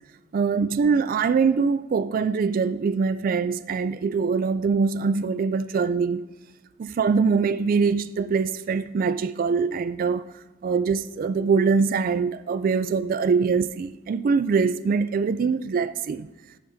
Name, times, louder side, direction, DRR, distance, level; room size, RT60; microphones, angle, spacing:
voice 1, 0.3-6.2 6.8-10.2 10.6-16.3, right 5 dB, 50° right, 0.3 m, -23 dB
12.5 x 8.4 x 2.7 m
head